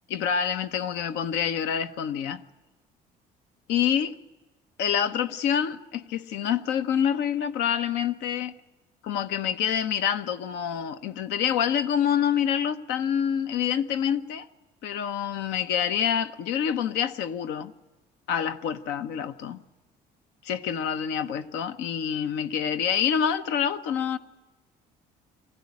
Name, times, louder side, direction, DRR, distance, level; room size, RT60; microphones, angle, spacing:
voice 1, 0.1-2.4 3.7-4.1 4.8-8.5 9.0-14.5 14.8-17.7 18.3-19.6 20.4-24.2, left 8 dB, 90° left, 1.0 m, -27 dB
23.5 x 15.0 x 9.7 m
cardioid pair, 110°, 17 cm